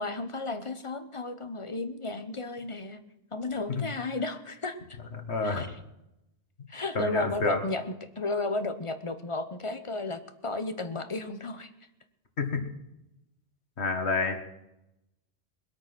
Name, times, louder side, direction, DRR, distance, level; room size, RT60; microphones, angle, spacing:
voice 1, 0.0-3.0 3.3-5.0 5.4-5.8 6.7-7.8 8.2-11.7, left 3 dB, 30° left, 9 dB, 1.1 m, -33 dB
voice 2, 5.2-5.7 6.9-7.6 12.4-12.6 13.8-14.4, left 3 dB, 90° left, 5 dB, 2.0 m, -28 dB
21.0 x 8.7 x 6.1 m, 0.87 s
omnidirectional pair, 1.1 m